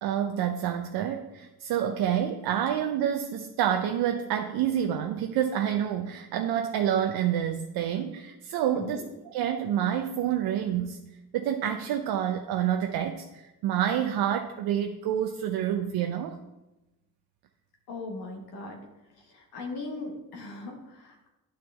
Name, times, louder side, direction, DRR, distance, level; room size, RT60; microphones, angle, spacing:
voice 1, 0.0-9.0 9.3-11.0 11.3-16.4, right 10 dB, 90° right, 5 dB, 0.5 m, -28 dB
voice 2, 8.7-9.0 17.9-18.8 19.3-21.3, left 2 dB, 90° left, 1 dB, 1.4 m, -39 dB
9.4 x 6.2 x 3.5 m, 1.0 s
supercardioid pair, 60°, 37 cm